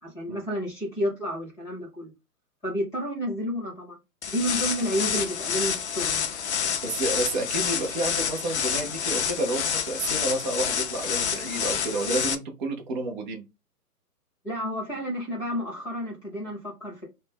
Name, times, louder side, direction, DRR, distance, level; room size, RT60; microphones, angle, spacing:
voice 1, 0.0-2.1 2.6-4.0 4.3-6.3 14.4-17.0, equal, 5° left, 0.9 m, -30 dB
sound 1, 4.2-12.3, left 7 dB, 50° left, 0.5 m, -28 dB
voice 2, 6.8-13.4, right 2 dB, 30° right, 0.6 m, -30 dB
2.6 x 2.1 x 3.5 m
hypercardioid pair, 145°, 47 cm